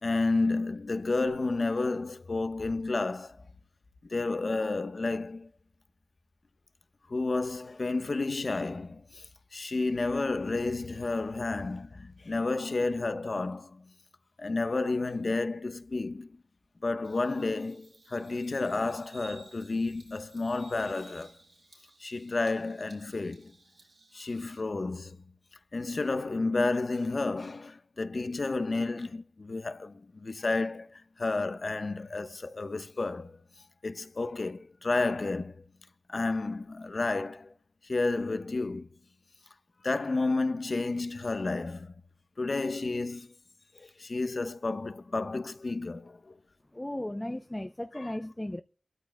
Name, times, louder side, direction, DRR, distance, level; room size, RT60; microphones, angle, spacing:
voice 1, 0.0-3.4 4.1-5.5 7.1-13.8 14.4-16.4 16.8-21.3 22.0-23.5 24.1-25.2 25.7-33.4 33.8-35.6 36.1-37.5 37.8-38.9 39.8-41.9 42.4-43.3 43.7-46.4 47.9-48.1, left 3 dB, 55° left, 1.1 m, -31 dB
Bird vocalization bird call bird song, 17.0-24.6, right 3 dB, 70° right, 3.5 m, -57 dB
voice 2, 46.7-48.6, left 1 dB, 20° left, 0.6 m, -36 dB
28.0 x 13.0 x 2.2 m
cardioid pair, 45°, 0 cm